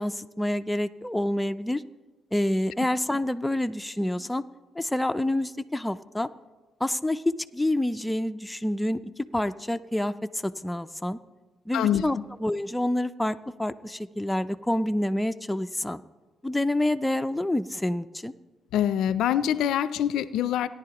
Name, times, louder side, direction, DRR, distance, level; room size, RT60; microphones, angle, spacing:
voice 1, 0.0-1.8 2.3-4.4 4.8-6.3 6.8-9.0 9.3-11.2 11.7-16.0 16.4-18.3, left 1 dB, 10° left, 10 dB, 0.4 m, -27 dB
voice 2, 11.7-12.2 18.7-20.7, left 10 dB, 85° left, 15 dB, 0.4 m, -25 dB
17.5 x 10.5 x 2.9 m, 1.2 s
cardioid pair, 90°, 0 cm